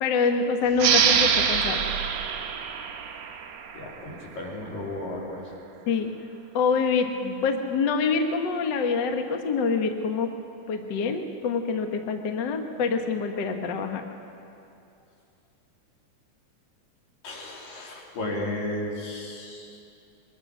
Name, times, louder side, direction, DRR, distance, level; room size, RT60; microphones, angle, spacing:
voice 1, 0.0-1.8 5.9-6.1 6.5-10.3 10.7-14.0, left 5 dB, 60° left, 5 dB, 1.2 m, -26 dB
sound 1, 0.8-4.0, right 7 dB, 65° right, 2.0 m, -24 dB
voice 2, 3.7-5.4 17.2-19.7, left 1 dB, 85° left, -2 dB, 4.7 m, -34 dB
23.0 x 20.5 x 6.1 m, 2.7 s
omnidirectional pair, 3.8 m